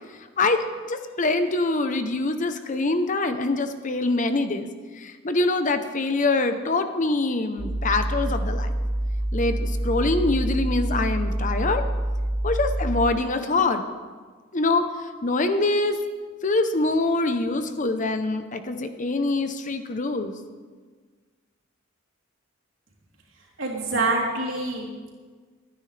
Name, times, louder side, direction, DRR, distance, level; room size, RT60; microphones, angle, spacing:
voice 1, 0.4-4.7 5.0-8.7 9.3-11.8 12.4-13.8 14.5-14.9 15.2-16.0 16.4-20.3, left 2 dB, 40° left, 8 dB, 0.8 m, -24 dB
sound 1, 7.6-13.1, right 1 dB, 25° right, 1.1 m, -26 dB
voice 2, 23.6-25.1, right 2 dB, 70° right, -4 dB, 3.4 m, -26 dB
24.0 x 9.8 x 3.3 m, 1.5 s
head